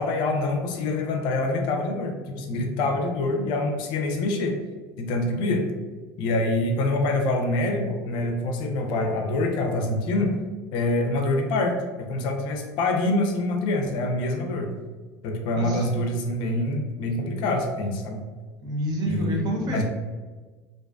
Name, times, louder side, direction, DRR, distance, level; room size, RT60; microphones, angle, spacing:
voice 1, 0.0-4.6 5.0-5.7 6.2-10.3 10.7-14.7 15.2-18.2 19.0-19.4 19.7-19.8, left 2 dB, 60° left, 4 dB, 0.4 m, -25 dB
voice 2, 15.5-16.0 18.6-19.8, equal, 50° right, 0 dB, 0.6 m, -28 dB
2.4 x 2.3 x 2.2 m, 1.4 s
supercardioid pair, 95°, 9 cm